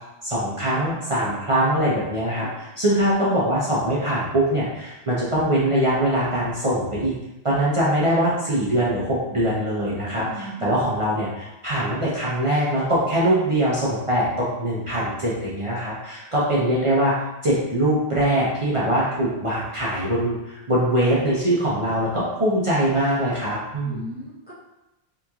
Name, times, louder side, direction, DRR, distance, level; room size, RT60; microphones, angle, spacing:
voice 1, 0.2-7.1 7.4-17.1 17.4-24.0, right 1 dB, 35° right, -8 dB, 0.6 m, -22 dB
voice 2, 9.9-10.8 23.8-24.5, equal, 10° left, -8 dB, 0.6 m, -37 dB
3.8 x 2.8 x 2.3 m, 0.97 s
omnidirectional pair, 1.1 m